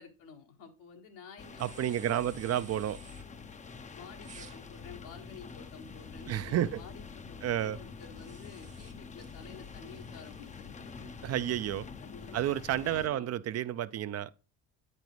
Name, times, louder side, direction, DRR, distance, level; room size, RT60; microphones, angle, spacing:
voice 1, 0.0-2.5 3.9-11.3 12.0-12.4 12.9-13.3, left 6 dB, 80° left, 1.5 m, -51 dB
sound 1, 1.4-13.1, left 5 dB, 20° left, 0.5 m, -47 dB
sound 2, 1.6-3.2 4.2-6.7 8.2-10.7, right 5 dB, 20° right, 0.8 m, -56 dB
voice 2, 1.6-3.0 6.3-6.8 7.4-7.8 11.2-11.9 12.3-14.3, right 11 dB, 45° right, 0.4 m, -31 dB
8.2 x 5.3 x 3.0 m
supercardioid pair, 75°, 35 cm